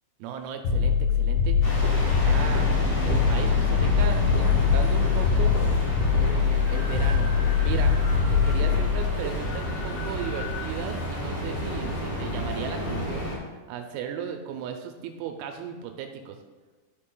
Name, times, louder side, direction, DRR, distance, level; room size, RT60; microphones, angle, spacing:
voice 1, 0.2-1.6 2.0-5.6 6.2-7.3 7.6-8.0 8.3-16.4, right 7 dB, 80° right, 5 dB, 2.3 m, -36 dB
sound 1, 0.6-9.7, left 7 dB, 75° left, 2.5 m, -23 dB
sound 2, 1.6-13.4, right 1 dB, 40° left, 3.6 m, -30 dB
13.0 x 4.6 x 3.8 m, 1.4 s
omnidirectional pair, 4.8 m